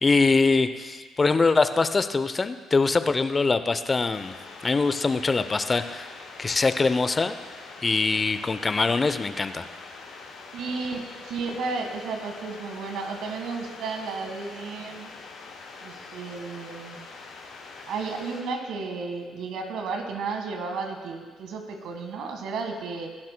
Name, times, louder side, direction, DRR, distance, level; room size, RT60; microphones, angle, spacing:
voice 1, 0.0-4.3 4.6-6.1 6.4-7.3 7.8-9.7, left 3 dB, 35° left, 11 dB, 0.7 m, -23 dB
sound 1, 4.1-18.4, left 4 dB, 70° left, 3.5 m, -44 dB
voice 2, 10.5-15.1 15.8-17.0 17.9-23.1, right 4 dB, 65° right, 4 dB, 1.7 m, -33 dB
24.5 x 12.0 x 2.3 m, 1.5 s
hypercardioid pair, 45°, 0 cm